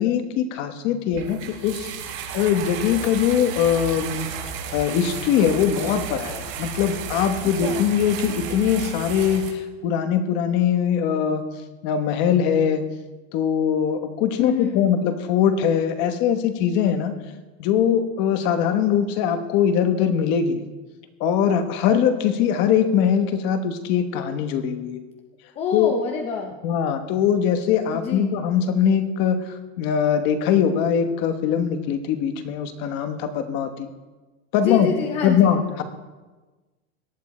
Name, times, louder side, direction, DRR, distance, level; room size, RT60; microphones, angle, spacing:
voice 1, 0.0-1.9 2.3-4.3 4.7-11.4 11.8-12.8 13.3-17.1 17.6-20.6 21.2-25.0 25.7-25.9 26.6-29.4 29.8-33.9 34.5-34.9 35.2-35.8, left 8 dB, 35° left, 8 dB, 1.1 m, -21 dB
sound 1, 1.1-9.5, right 7 dB, 60° right, 4.0 m, -33 dB
voice 2, 14.4-14.9 25.6-26.5 27.9-28.3 34.6-35.5, left 6 dB, 20° left, 3 dB, 0.7 m, -27 dB
18.0 x 11.5 x 4.3 m, 1.2 s
supercardioid pair, 180°, 32 cm